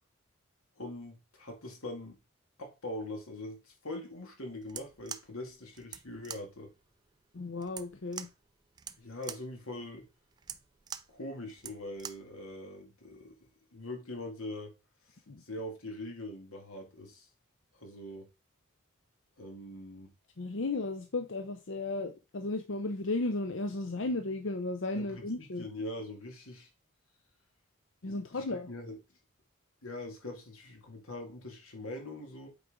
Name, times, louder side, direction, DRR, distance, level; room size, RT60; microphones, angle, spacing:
voice 1, 0.8-2.2 2.6-6.7 9.0-10.1 11.1-13.3 13.7-14.8 15.4-17.3 17.7-18.3 19.4-20.1 25.0-26.7 28.1-28.9 29.8-32.5, left 1 dB, 90° left, 2.3 m, -42 dB
sound 1, 4.6-12.3, right 8 dB, 20° right, 0.3 m, -46 dB
voice 2, 7.3-8.3 15.3-15.4 20.4-25.7 28.0-28.7, left 2 dB, 60° left, 0.7 m, -34 dB
8.2 x 4.7 x 3.7 m
head